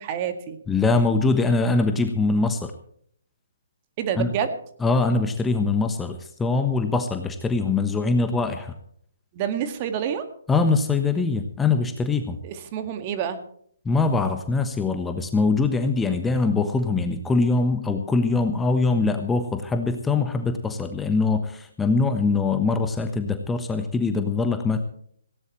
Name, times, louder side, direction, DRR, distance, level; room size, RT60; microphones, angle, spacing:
voice 1, 0.0-0.6 4.0-4.6 9.3-10.3 12.4-13.4, right 8 dB, 30° right, 8 dB, 2.0 m, -28 dB
voice 2, 0.7-2.7 4.2-4.3 4.8-8.7 10.5-12.4 13.8-24.8, left 3 dB, 10° left, 7 dB, 1.2 m, -23 dB
18.5 x 17.0 x 3.2 m, 0.62 s
figure-of-eight pair, 135°, 0 cm